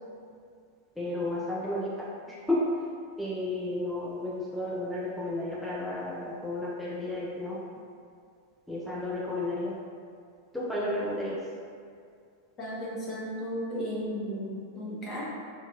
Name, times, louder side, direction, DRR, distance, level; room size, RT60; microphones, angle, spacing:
voice 1, 1.0-2.6 3.2-7.6 8.7-9.7 10.5-11.4, left 1 dB, ahead, -7 dB, 0.3 m, -32 dB
voice 2, 12.6-15.2, equal, 30° left, -7 dB, 0.8 m, -34 dB
2.5 x 2.2 x 2.6 m, 2.3 s
figure-of-eight pair, 90°, 0 cm